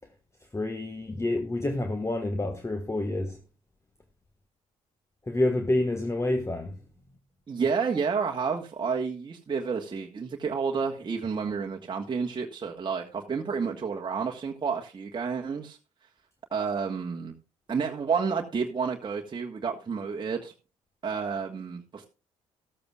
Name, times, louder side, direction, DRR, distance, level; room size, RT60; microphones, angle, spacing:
voice 1, 0.5-3.4 5.3-6.8, left 2 dB, 15° left, 1.4 m, -28 dB
voice 2, 7.5-15.8 16.5-17.3 17.7-20.5 21.0-22.1, right 5 dB, 30° right, 1.4 m, -30 dB
14.0 x 13.5 x 2.3 m
hypercardioid pair, 50°, 16 cm